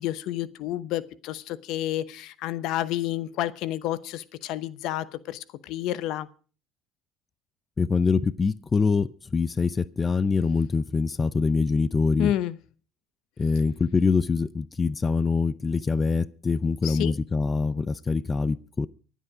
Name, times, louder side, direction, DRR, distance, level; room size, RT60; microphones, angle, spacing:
voice 1, 0.0-6.3 12.2-12.6 16.8-17.1, left 13 dB, 70° left, 0.9 m, -30 dB
voice 2, 7.8-12.3 13.4-18.9, left 4 dB, 25° left, 0.6 m, -24 dB
24.5 x 8.3 x 4.9 m
supercardioid pair, 85°, 0 cm